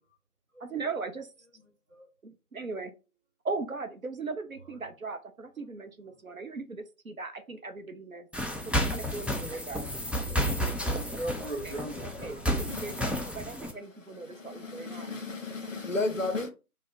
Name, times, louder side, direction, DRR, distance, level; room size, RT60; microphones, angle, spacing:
voice 1, 0.6-1.3 2.2-2.9 3.4-8.3 8.9-9.9 11.6-15.1, right 4 dB, 65° right, 0.6 m, -38 dB
sound 1, 8.3-13.7, equal, 5° right, 0.3 m, -31 dB
voice 2, 10.3-12.5, right 1 dB, 50° right, 1.1 m, -39 dB
voice 3, 12.7-13.1 13.9-16.5, left 3 dB, 60° left, 0.6 m, -34 dB
2.4 x 2.1 x 3.9 m
figure-of-eight pair, 170°, 45 cm